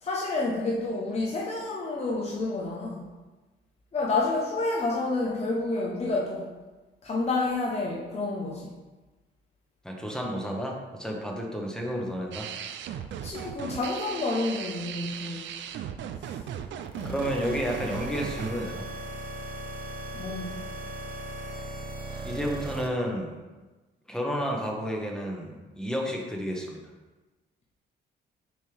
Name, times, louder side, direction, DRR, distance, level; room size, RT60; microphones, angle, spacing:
voice 1, 0.0-3.1 3.9-6.5 7.0-8.7 13.1-15.5 16.9-17.1 20.1-20.6, left 2 dB, 35° left, -3 dB, 0.9 m, -29 dB
voice 2, 9.8-12.5 17.0-18.9 22.2-23.4 24.1-26.8, equal, 5° left, 0 dB, 1.1 m, -31 dB
sound 1, 12.3-18.5, right 9 dB, 70° right, 0.4 m, -37 dB
sound 2, 16.9-22.9, right 1 dB, 45° right, 1.0 m, -38 dB
6.5 x 4.4 x 3.5 m, 1.2 s
cardioid pair, 90°, 20 cm